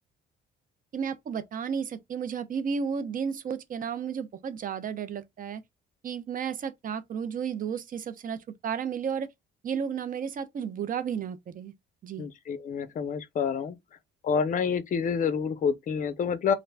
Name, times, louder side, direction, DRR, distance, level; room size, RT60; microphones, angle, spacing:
voice 1, 0.9-5.6 6.0-9.3 9.6-11.7 12.0-12.3, right 7 dB, 45° right, 0.5 m, -33 dB
voice 2, 12.2-13.8 14.2-16.5, left 6 dB, 40° left, 0.4 m, -28 dB
2.4 x 2.1 x 3.2 m
cardioid pair, 90°, 20 cm